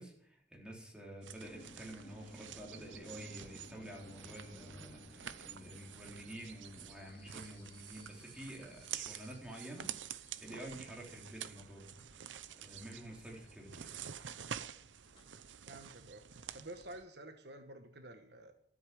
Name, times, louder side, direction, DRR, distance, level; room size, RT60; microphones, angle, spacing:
voice 1, 0.0-11.9 12.6-13.9, equal, 5° right, -2 dB, 3.8 m, -49 dB
sound 1, 1.2-17.0, right 9 dB, 90° right, 0.7 m, -49 dB
sound 2, 1.4-15.9, left 1 dB, 30° left, 2.4 m, -60 dB
voice 2, 15.7-16.2 16.5-18.5, right 1 dB, 65° right, 7 dB, 1.4 m, -50 dB
13.5 x 8.1 x 8.7 m, 0.67 s
head